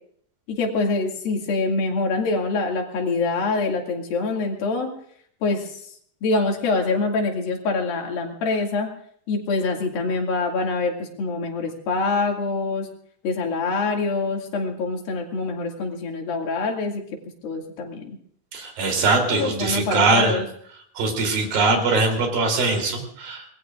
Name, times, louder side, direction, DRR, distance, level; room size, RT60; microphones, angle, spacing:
voice 1, 0.5-4.9 5.4-5.9 6.2-8.9 9.3-12.9 13.2-17.0 17.4-18.2 19.3-20.5, left 3 dB, 90° left, 1 dB, 4.2 m, -25 dB
voice 2, 18.5-20.4 21.0-23.5, right 3 dB, 80° right, 3 dB, 5.2 m, -21 dB
26.0 x 20.5 x 2.5 m, 0.63 s
omnidirectional pair, 4.0 m